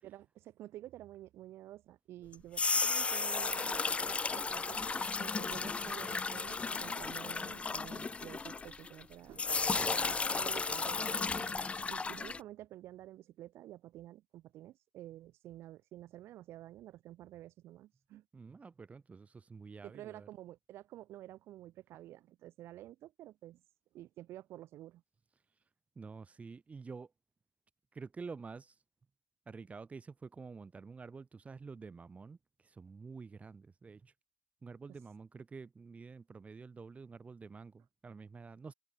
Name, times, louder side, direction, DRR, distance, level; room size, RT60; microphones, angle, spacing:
voice 1, 0.0-4.8 5.2-9.5 9.8-11.6 11.9-18.2 19.8-23.6 23.9-25.0, right 14 dB, 70° right, 6.5 m, -50 dB
sound 1, 2.3-9.0 9.4-12.4, left 4 dB, 30° left, 1.1 m, -34 dB
voice 2, 18.3-20.3 26.0-27.1 27.9-28.7 29.5-32.4 32.6-34.1 34.6-38.7, right 4 dB, 30° right, 6.0 m, -49 dB
supercardioid pair, 75°, 4 cm